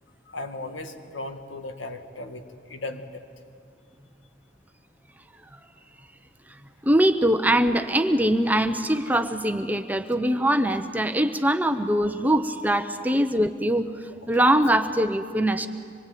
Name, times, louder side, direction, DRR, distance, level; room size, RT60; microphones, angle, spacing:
voice 1, 0.3-3.2, left 2 dB, 85° left, 6 dB, 1.9 m, -36 dB
voice 2, 6.8-13.9 14.3-15.7, right 1 dB, 10° right, 8 dB, 0.8 m, -22 dB
25.5 x 21.0 x 9.3 m, 2.3 s
head